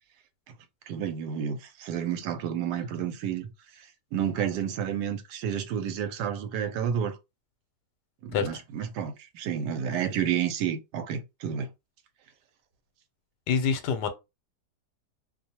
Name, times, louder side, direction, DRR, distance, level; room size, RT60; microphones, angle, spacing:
voice 1, 0.9-3.5 3.8-7.2 8.2-11.7, right 8 dB, 85° right, 1.2 m, -30 dB
voice 2, 13.5-14.1, left 6 dB, 85° left, 1.2 m, -26 dB
2.7 x 2.1 x 2.8 m
omnidirectional pair, 1.8 m